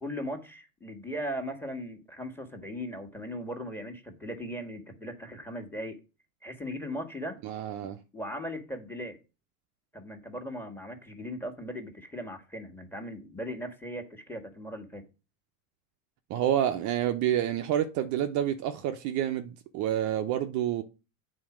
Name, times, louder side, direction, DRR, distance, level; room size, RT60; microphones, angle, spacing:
voice 1, 0.0-6.0 6.4-7.4 7.8-9.2 9.9-15.0, equal, 5° left, 1.6 m, -38 dB
voice 2, 7.4-8.0 16.3-20.8, right 11 dB, 40° right, 0.7 m, -28 dB
8.7 x 4.2 x 6.1 m
supercardioid pair, 115°, 44 cm